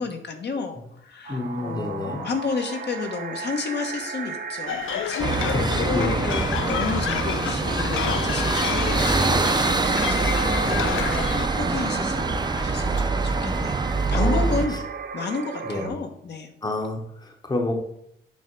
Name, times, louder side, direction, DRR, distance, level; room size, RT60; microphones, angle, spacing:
voice 1, 0.0-14.8 15.1-16.5, left 4 dB, 55° left, 5 dB, 1.1 m, -32 dB
voice 2, 1.3-2.2 5.5-6.6 10.6-11.0 14.1-14.8 15.6-16.0 16.6-17.7, left 2 dB, 20° left, 3 dB, 0.9 m, -29 dB
sound 1, 1.3-15.9, right 5 dB, 50° right, 0.9 m, -35 dB
sound 2, 4.7-11.5, left 10 dB, 85° left, 0.5 m, -30 dB
sound 3, 5.2-14.7, right 3 dB, 20° right, 0.5 m, -24 dB
9.0 x 3.3 x 5.2 m, 0.75 s
wide cardioid pair, 140°, 20 cm